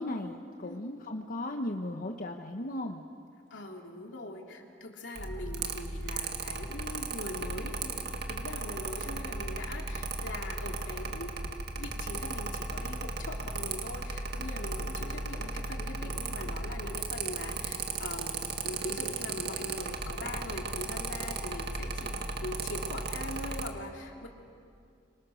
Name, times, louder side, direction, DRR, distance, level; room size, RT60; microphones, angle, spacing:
voice 1, 0.0-3.0, left 1 dB, 50° left, 3 dB, 1.1 m, -36 dB
voice 2, 3.5-11.3 11.7-24.3, left 1 dB, 80° left, 1 dB, 3.2 m, -42 dB
Mechanical fan, 5.2-23.7, right 3 dB, 60° right, 1.9 m, -36 dB
29.5 x 25.5 x 6.5 m, 2.4 s
head